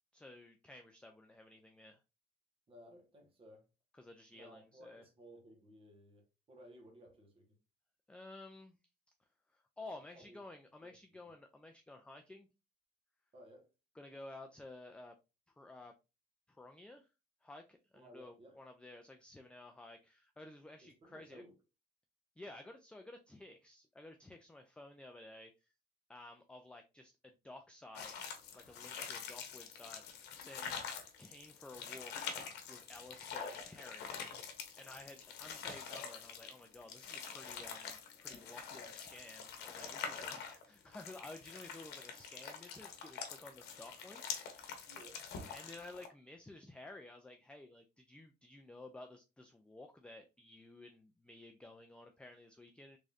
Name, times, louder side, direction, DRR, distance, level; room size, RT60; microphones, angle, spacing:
voice 1, 0.1-2.0 4.0-5.0 8.1-8.8 9.5-12.5 14.0-15.1 15.6-15.9 16.5-17.1 17.4-21.4 22.4-25.5 26.1-30.8 31.2-32.3 32.7-34.1 34.8-44.9 45.5-53.0, left 2 dB, 5° left, 0.4 m, -53 dB
voice 2, 2.7-3.7 4.3-7.6 10.1-10.4 10.8-11.3 13.3-13.7 17.9-18.6 20.8-21.5 44.9-45.2, right 1 dB, 35° right, 1.4 m, -58 dB
sound 1, 28.0-46.1, left 6 dB, 80° left, 0.9 m, -46 dB
3.6 x 3.1 x 2.6 m
cardioid pair, 110°, 17 cm